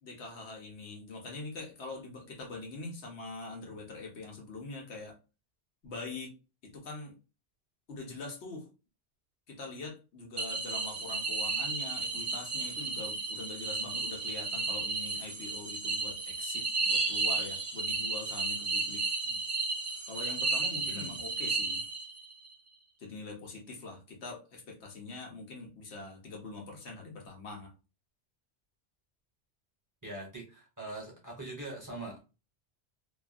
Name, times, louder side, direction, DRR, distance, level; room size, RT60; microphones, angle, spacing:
voice 1, 0.0-5.2 5.8-6.3 6.6-7.1 7.9-8.7 9.5-19.0 20.0-21.8 23.0-27.7, left 3 dB, 80° left, 1 dB, 1.1 m, -43 dB
sound 1, 10.4-22.3, right 3 dB, 40° right, 0.4 m, -33 dB
voice 2, 20.9-21.3 30.0-32.2, right 2 dB, 20° right, -2 dB, 0.8 m, -42 dB
2.7 x 2.4 x 2.4 m, 0.31 s
omnidirectional pair, 1.1 m